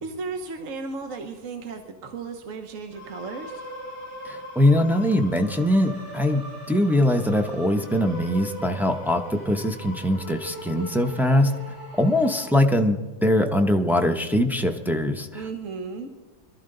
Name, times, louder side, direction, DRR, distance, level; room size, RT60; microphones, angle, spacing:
voice 1, 0.0-3.6 15.3-16.1, right 4 dB, 55° right, 5 dB, 1.3 m, -35 dB
sound 1, 2.9-12.5, right 1 dB, 85° right, 3.7 m, -40 dB
voice 2, 4.2-11.5 11.9-15.4, left 1 dB, 5° right, 3 dB, 0.4 m, -22 dB
22.5 x 13.0 x 3.9 m, 1.2 s
omnidirectional pair, 1.8 m